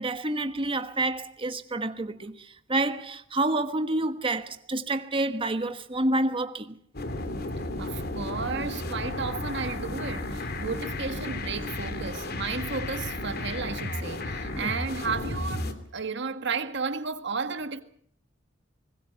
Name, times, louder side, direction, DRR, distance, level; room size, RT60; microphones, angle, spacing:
voice 1, 0.0-6.8 14.5-14.7, right 2 dB, 30° right, 1.3 m, -28 dB
sound 1, 6.9-15.7, left 2 dB, 55° left, 2.9 m, -33 dB
voice 2, 7.8-17.8, right 5 dB, 65° right, 1.8 m, -33 dB
25.5 x 21.0 x 5.9 m
head